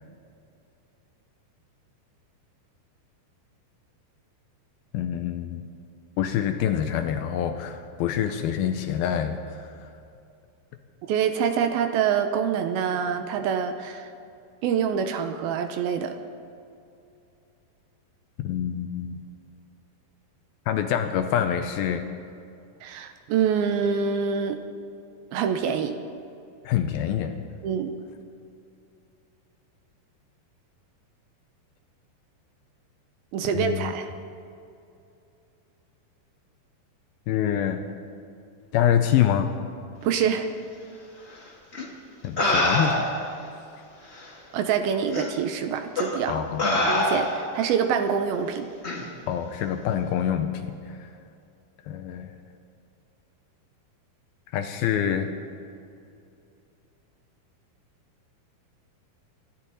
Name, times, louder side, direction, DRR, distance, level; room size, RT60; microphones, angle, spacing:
voice 1, 4.9-5.7 6.2-9.9 18.4-19.2 20.7-22.1 26.7-27.3 33.5-33.9 37.3-37.8 38.7-39.5 42.2-43.1 43.7-43.8 46.3-46.6 49.3-51.1 51.9-52.3 54.5-55.3, left 9 dB, 80° left, 7 dB, 2.4 m, -26 dB
voice 2, 11.1-14.1 14.6-16.1 22.8-24.6 25.3-25.9 27.6-27.9 33.3-34.1 40.0-40.5 44.5-46.4 46.9-48.7, right 7 dB, 75° right, 7 dB, 2.5 m, -25 dB
sound 1, 41.7-41.8 42.4-43.3 44.2-44.3 45.1-45.3 45.9-46.2 46.6-47.5 48.8-49.0, left 1 dB, 50° left, 0.7 m, -24 dB
24.5 x 12.5 x 4.1 m, 2.6 s
omnidirectional pair, 4.7 m